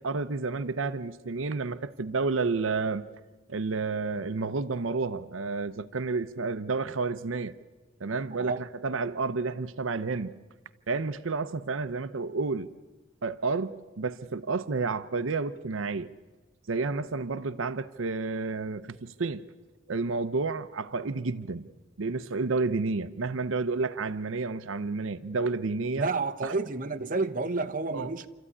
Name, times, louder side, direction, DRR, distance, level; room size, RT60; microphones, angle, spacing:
voice 1, 0.0-3.1 3.5-7.5 8.0-10.3 10.9-12.7 13.2-16.1 16.7-19.4 19.9-21.6 22.0-26.1 26.4-26.5 27.9-28.1, right 4 dB, 90° right, 0.7 m, -30 dB
voice 2, 25.9-28.3, right 3 dB, 45° right, 1.1 m, -30 dB
27.5 x 14.0 x 9.8 m
head